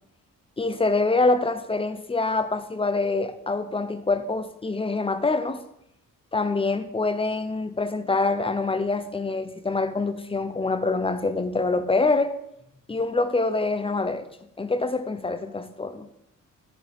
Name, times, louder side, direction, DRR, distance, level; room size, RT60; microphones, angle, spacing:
voice 1, 0.6-5.6 6.3-12.3 12.9-14.3 14.6-16.1, left 3 dB, 15° left, 0.7 m, -25 dB
10.0 x 6.1 x 3.6 m
cardioid pair, 85°, 32 cm